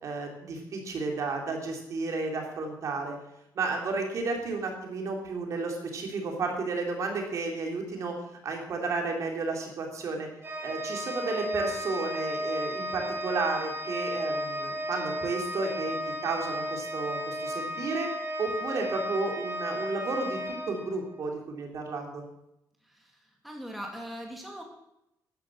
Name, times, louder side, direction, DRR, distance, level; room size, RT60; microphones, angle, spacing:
voice 1, 0.0-3.2 3.6-8.1 8.4-10.3 10.6-16.0 16.2-18.1 18.4-22.2, right 3 dB, 45° right, 2 dB, 3.7 m, -32 dB
Organ, 10.4-21.3, equal, 30° right, 2.6 m, -34 dB
voice 2, 22.8-24.6, equal, ahead, 0 dB, 2.2 m, -41 dB
13.5 x 11.5 x 7.7 m, 0.83 s
cardioid pair, 175°, 7 cm